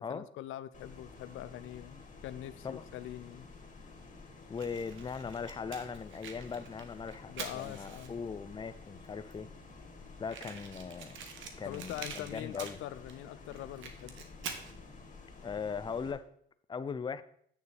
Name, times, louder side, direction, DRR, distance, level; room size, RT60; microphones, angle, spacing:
voice 1, 0.1-3.5 7.3-8.2 11.6-14.2, left 13 dB, 85° left, 13 dB, 0.4 m, -43 dB
sound 1, 0.7-16.1, left 3 dB, 40° left, 2.3 m, -52 dB
voice 2, 4.5-9.5 10.2-11.2 11.6-12.8 15.4-16.3 16.7-17.2, left 5 dB, 25° left, 13 dB, 0.5 m, -39 dB
Fire, 4.5-8.4 9.0-9.1 9.3-9.4 9.6-9.7 10.2-13.2 13.5-14.7, right 6 dB, 75° right, 1.1 m, -46 dB
9.5 x 6.7 x 3.4 m, 0.65 s
cardioid pair, 90°, 20 cm